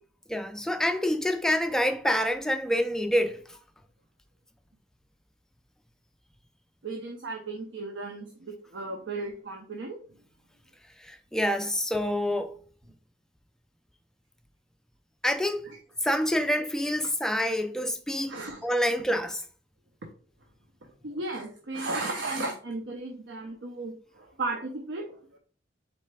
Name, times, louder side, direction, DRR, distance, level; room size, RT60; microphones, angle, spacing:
voice 1, 0.3-3.4 11.0-12.6 15.2-15.7 16.0-18.3 18.6-19.4, equal, 5° left, 0.3 m, -27 dB
voice 2, 6.8-10.0 18.3-18.7 21.0-25.4, right 2 dB, 70° right, 0.6 m, -35 dB
4.1 x 3.2 x 3.3 m
head